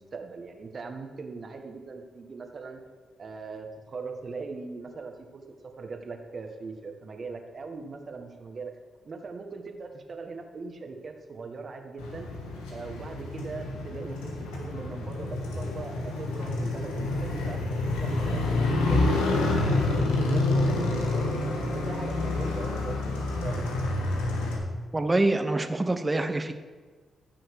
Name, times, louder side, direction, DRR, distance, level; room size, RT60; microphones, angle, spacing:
voice 1, 0.0-2.8 3.2-5.4 5.8-8.7 9.0-12.3 12.7-17.6 18.0-19.5 19.8-23.7, right 4 dB, 50° right, 5 dB, 1.6 m, -40 dB
Motorcycle, 12.0-24.6, left 2 dB, 85° left, 1.6 m, -28 dB
voice 2, 24.9-26.5, right 2 dB, 25° right, 9 dB, 1.1 m, -25 dB
14.5 x 6.3 x 4.9 m, 1.5 s
hypercardioid pair, 45°, 0 cm